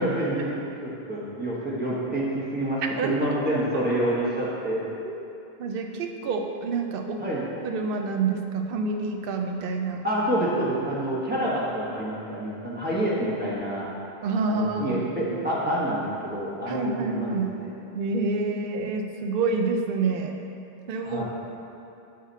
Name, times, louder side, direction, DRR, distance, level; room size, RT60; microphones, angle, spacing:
voice 1, 0.0-4.8 7.2-7.4 10.0-13.9 14.5-17.4 21.0-21.2, right 1 dB, 10° right, -7 dB, 1.2 m, -27 dB
voice 2, 3.5-3.9 5.0-5.3 5.6-7.2 7.6-10.0 14.2-15.0 16.7-17.5 17.9-20.3 20.9-21.2, right 4 dB, 65° right, 3 dB, 0.7 m, -28 dB
7.5 x 4.0 x 4.1 m, 2.8 s
omnidirectional pair, 1.0 m